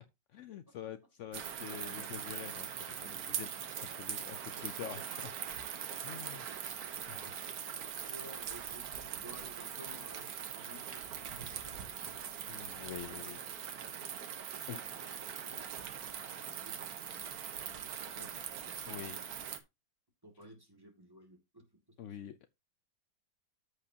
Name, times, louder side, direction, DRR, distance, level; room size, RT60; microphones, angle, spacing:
voice 1, 0.3-3.5 3.8-5.3 6.0-6.5 7.1-7.3 12.5-13.4 14.7-14.9 18.9-19.2 22.0-22.5, left 10 dB, 80° left, 0.6 m, -46 dB
sound 1, 1.3-19.6, right 8 dB, 60° right, 1.3 m, -42 dB
voice 2, 8.1-12.2 13.1-15.9 16.3-19.3 20.2-22.2, equal, 15° right, 1.9 m, -57 dB
13.5 x 4.9 x 2.8 m
omnidirectional pair, 1.9 m